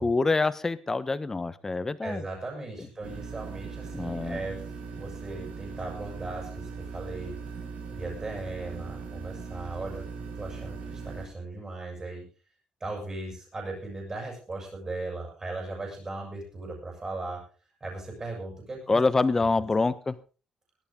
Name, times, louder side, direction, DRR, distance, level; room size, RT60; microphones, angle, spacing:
voice 1, 0.0-2.2 3.9-4.4 18.9-20.2, left 3 dB, 20° left, 15 dB, 1.1 m, -26 dB
voice 2, 2.0-4.6 4.9-7.4 7.9-10.0 10.3-12.3 12.8-17.4 17.8-19.0 19.3-19.5, right 2 dB, 25° right, 0 dB, 7.5 m, -37 dB
sound 1, 3.0-11.3, right 5 dB, 70° right, 6.3 m, -39 dB
18.5 x 13.5 x 3.8 m, 0.35 s
cardioid pair, 125°, 2 cm